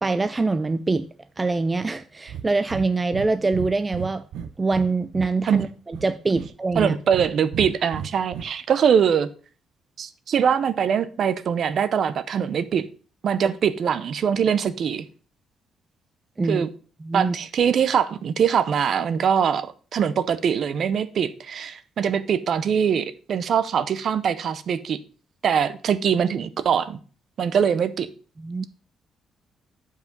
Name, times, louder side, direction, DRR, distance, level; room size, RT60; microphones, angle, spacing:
voice 1, 0.0-1.1 1.4-4.2 4.6-7.0 16.4-16.7 17.0-17.4 28.4-28.7, right 3 dB, 15° right, 0.3 m, -24 dB
Breathing, 2.3-2.5 2.7-3.3 3.5-4.9 5.1-6.1 6.4-7.3 7.5-8.4, right 8 dB, 90° right, 0.7 m, -33 dB
voice 2, 6.8-9.3 10.0-12.9 13.2-15.1 16.5-16.7 17.1-25.0 25.4-27.0 27.4-28.1, right 7 dB, 50° right, 0.6 m, -22 dB
8.2 x 4.9 x 5.2 m
cardioid pair, 160°, 0 cm